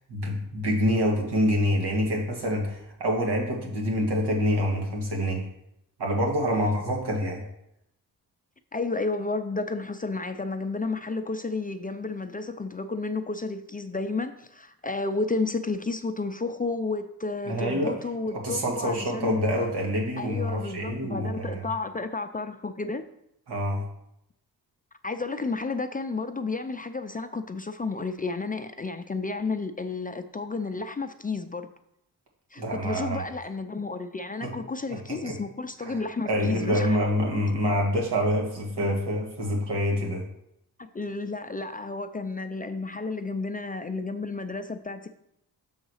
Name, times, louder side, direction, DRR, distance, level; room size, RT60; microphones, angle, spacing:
voice 1, 0.1-5.4 6.0-7.5 17.5-18.0 18.3-21.6 23.5-23.9 32.6-33.2 34.4-34.5 34.9-35.4 35.8-36.0 36.3-40.2, equal, 80° right, 0 dB, 1.9 m, -26 dB
voice 2, 6.5-6.8 8.7-19.5 20.2-23.1 25.0-31.7 32.5-37.0 40.8-45.1, left 3 dB, 25° left, 8 dB, 0.4 m, -32 dB
6.4 x 3.9 x 6.4 m, 0.78 s
wide cardioid pair, 95°, 40 cm